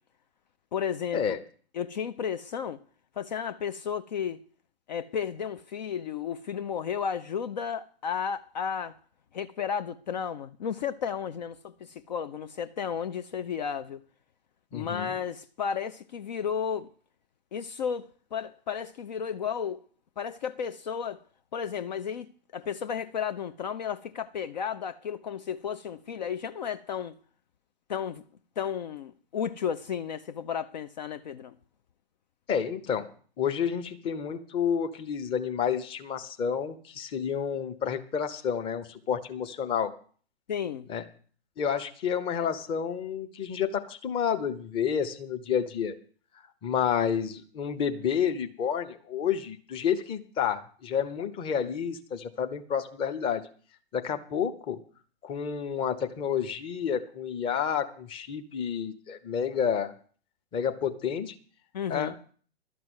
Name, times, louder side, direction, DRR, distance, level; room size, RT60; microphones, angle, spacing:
voice 1, 0.7-1.2 1.7-2.8 3.2-4.4 4.9-9.0 9.3-14.0 14.7-16.9 17.5-19.8 20.2-21.2 21.5-27.2 27.9-28.2 28.6-31.6 40.5-40.9 61.7-62.1, left 7 dB, 45° left, 0.5 m, -33 dB
voice 2, 14.7-15.1 32.5-33.1 33.4-39.9 40.9-41.0 41.6-45.9 46.6-53.4 53.9-54.8 55.2-59.9 60.5-61.3 61.9-62.1, left 7 dB, 15° left, 0.9 m, -30 dB
12.0 x 6.0 x 9.3 m
figure-of-eight pair, 120°, 31 cm